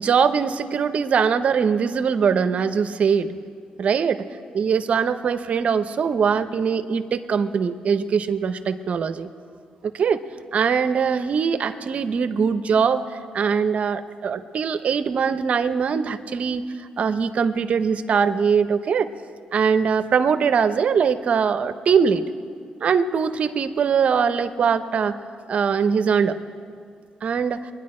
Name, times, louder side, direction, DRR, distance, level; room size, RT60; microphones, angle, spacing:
voice 1, 0.0-3.4 3.8-4.2 4.5-9.3 9.8-10.2 10.5-13.0 13.3-19.1 19.5-22.2 22.8-25.2 25.5-26.4 27.2-27.6, right 6 dB, 55° right, 11 dB, 0.6 m, -22 dB
22.5 x 10.0 x 4.3 m, 2.2 s
cardioid pair, 90°, 3 cm